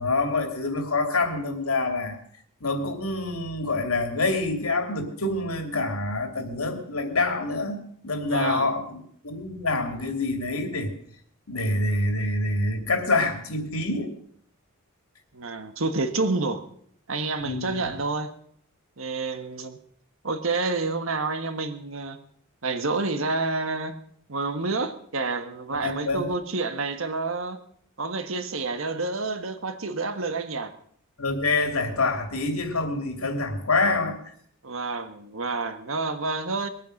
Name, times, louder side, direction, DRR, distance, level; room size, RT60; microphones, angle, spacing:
voice 1, 0.0-2.2 2.6-9.0 9.2-10.9 11.5-14.1 17.4-17.9 25.8-26.3 31.2-34.2, left 2 dB, 80° left, 5 dB, 2.7 m, -26 dB
voice 2, 8.3-8.7 15.3-16.6 17.1-18.3 19.0-19.8 20.2-22.2 22.6-24.0 24.3-27.6 28.0-30.7 34.6-36.7, right 3 dB, 65° right, 9 dB, 1.5 m, -29 dB
21.0 x 9.2 x 6.5 m, 0.64 s
head